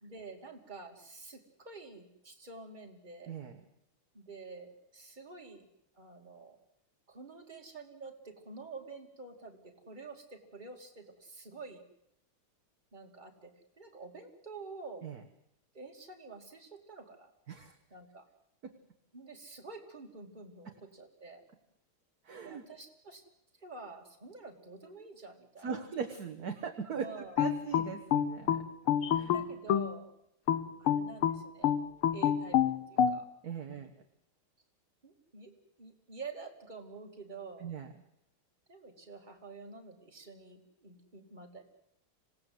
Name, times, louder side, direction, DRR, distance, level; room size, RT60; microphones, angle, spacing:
voice 1, 0.0-3.3 4.1-5.7 5.9-6.6 7.1-11.8 12.9-15.0 15.7-17.3 17.9-18.3 19.1-21.4 22.4-23.2 23.6-25.9 27.0-27.4 29.3-30.1 30.8-31.8 32.1-33.3 35.0-35.5 35.8-37.7 38.7-41.6, right 4 dB, 20° right, 2 dB, 2.7 m, -48 dB
voice 2, 22.2-22.6 25.6-27.1 27.4-28.6 29.1-29.3 33.4-33.9 37.6-37.9, right 6 dB, 50° right, 5 dB, 1.6 m, -39 dB
sound 1, 27.4-30.0 30.5-33.2, left 9 dB, 75° left, 1.9 m, -28 dB
26.0 x 17.5 x 7.9 m, 0.80 s
omnidirectional pair, 2.4 m